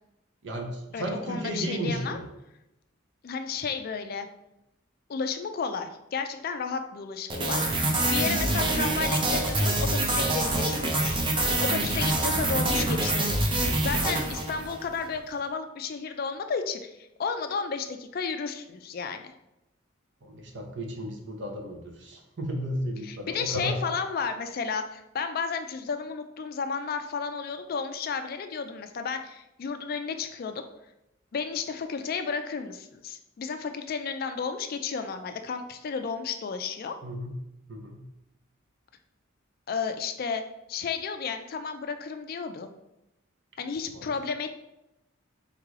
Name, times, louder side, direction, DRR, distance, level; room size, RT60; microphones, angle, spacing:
voice 1, 0.4-2.3 20.2-23.8 37.0-37.3 37.7-38.0 43.9-44.1, equal, 60° right, 2 dB, 0.8 m, -34 dB
voice 2, 0.9-2.2 3.2-4.3 5.1-19.3 23.0-30.6 31.3-37.0 39.7-40.4 40.7-42.7 43.6-44.5, left 5 dB, 45° left, 8 dB, 0.3 m, -33 dB
sound 1, 7.3-14.9, right 2 dB, 25° right, 0.5 m, -26 dB
3.6 x 3.2 x 3.6 m, 0.90 s
head